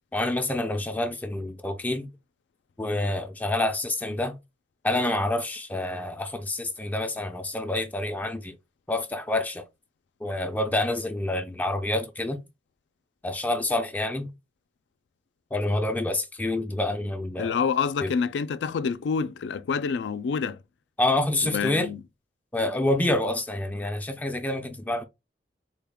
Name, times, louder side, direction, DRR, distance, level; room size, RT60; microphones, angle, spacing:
voice 1, 0.1-2.1 2.8-4.4 4.8-8.5 8.9-9.6 10.2-12.4 13.2-14.3 15.5-17.6 18.0-18.1 21.0-21.9 22.5-25.0, left 1 dB, 10° left, 0.4 m, -27 dB
voice 2, 17.4-20.6 21.4-22.0, left 6 dB, 80° left, 0.3 m, -27 dB
3.8 x 2.2 x 3.4 m
head